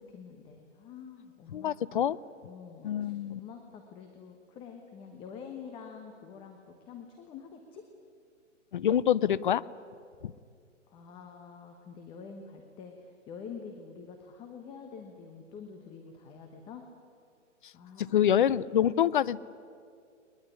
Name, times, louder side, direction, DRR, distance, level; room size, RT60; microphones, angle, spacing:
voice 1, 0.0-2.0 2.4-7.8 10.9-16.9 17.7-18.2, left 6 dB, 15° left, 4 dB, 1.1 m, -47 dB
voice 2, 1.5-2.2 2.8-3.4 8.7-9.6 10.2-10.3 18.0-19.4, left 10 dB, 40° left, 20 dB, 0.6 m, -26 dB
21.0 x 21.0 x 9.9 m, 2.3 s
hypercardioid pair, 155°, 38 cm